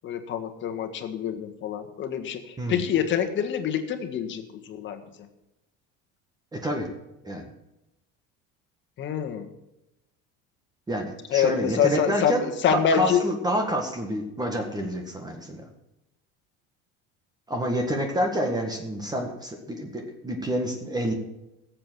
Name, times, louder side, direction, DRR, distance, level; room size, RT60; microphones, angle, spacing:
voice 1, 0.0-5.0 9.0-9.5 11.3-13.2, left 8 dB, 40° left, 8 dB, 1.7 m, -26 dB
voice 2, 6.5-6.9 7.2-7.5 10.9-15.6 17.5-21.1, equal, 15° right, 3 dB, 1.7 m, -28 dB
17.0 x 7.8 x 6.2 m, 0.94 s
cardioid pair, 135°, 29 cm